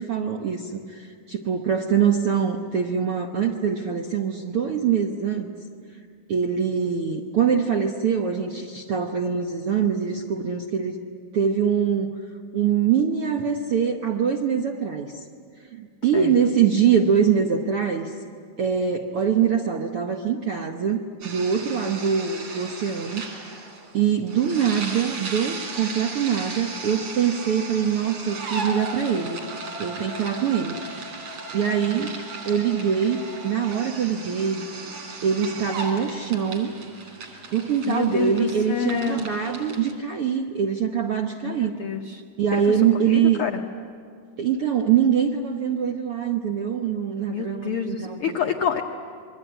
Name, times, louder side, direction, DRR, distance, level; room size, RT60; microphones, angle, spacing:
voice 1, 0.0-5.5 6.3-11.0 11.3-12.2 12.5-15.1 15.7-18.1 18.6-23.2 23.9-29.4 29.8-30.8 31.5-32.1 32.4-34.7 35.2-36.7 37.5-41.7 42.4-43.5 44.4-48.4, right 7 dB, 70° right, 3 dB, 1.3 m, -23 dB
sound 1, 21.2-39.9, right 3 dB, 55° right, 4.5 m, -36 dB
voice 2, 37.9-39.3 41.4-42.2 42.5-42.8 43.1-43.6 47.3-48.8, left 7 dB, 80° left, 4 dB, 1.2 m, -28 dB
27.5 x 22.5 x 9.0 m, 2.2 s
omnidirectional pair, 4.0 m